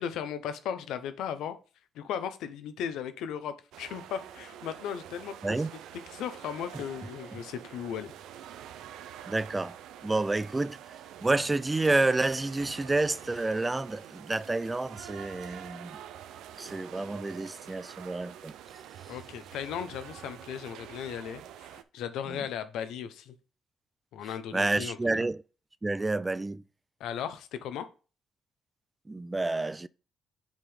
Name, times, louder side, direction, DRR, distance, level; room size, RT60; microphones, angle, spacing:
voice 1, 0.0-1.6 1.9-5.6 6.1-8.1 19.1-21.4 21.7-23.4 24.1-25.2 27.0-27.9, left 8 dB, 85° left, 0.8 m, -36 dB
sound 1, 3.7-21.8, right 10 dB, 85° right, 0.5 m, -47 dB
voice 2, 9.3-9.8 10.0-10.8 11.2-16.0 16.6-18.5 22.3-22.5 24.5-25.4 25.8-26.6 29.1-29.9, right 2 dB, 20° right, 0.3 m, -29 dB
7.2 x 3.8 x 5.0 m
cardioid pair, 90°, 0 cm